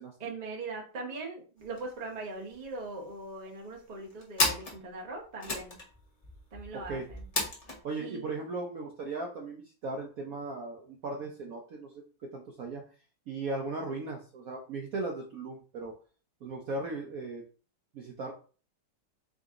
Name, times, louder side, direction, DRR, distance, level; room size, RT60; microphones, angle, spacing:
voice 1, 0.2-5.8 6.5-7.3 8.0-8.2, right 3 dB, 30° right, -1 dB, 0.8 m, -40 dB
sound 1, 1.6-1.9 2.2-2.3 2.5-3.2 3.7-7.8, left 2 dB, 35° left, 0.5 m, -34 dB
voice 2, 7.8-12.8 13.3-15.9 16.4-17.4 17.9-18.3, right 3 dB, 65° right, 0 dB, 0.9 m, -37 dB
3.8 x 2.7 x 3.6 m, 0.38 s
omnidirectional pair, 2.0 m